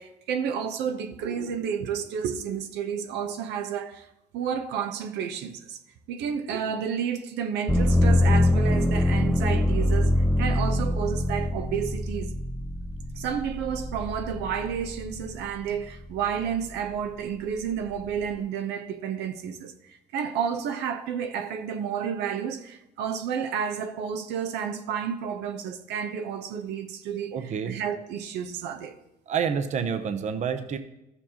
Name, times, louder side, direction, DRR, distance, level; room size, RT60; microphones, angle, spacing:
voice 1, 0.0-4.1 4.3-5.8 6.1-12.3 13.1-19.7 20.1-27.4 27.7-29.0, right 7 dB, 85° right, 0.8 m, -31 dB
sound 1, 7.7-15.5 16.0-16.8, left 1 dB, 5° left, 0.3 m, -24 dB
voice 2, 27.3-27.8 29.3-30.8, right 7 dB, 45° right, 0.7 m, -28 dB
13.5 x 7.0 x 2.9 m
cardioid pair, 110°, 17 cm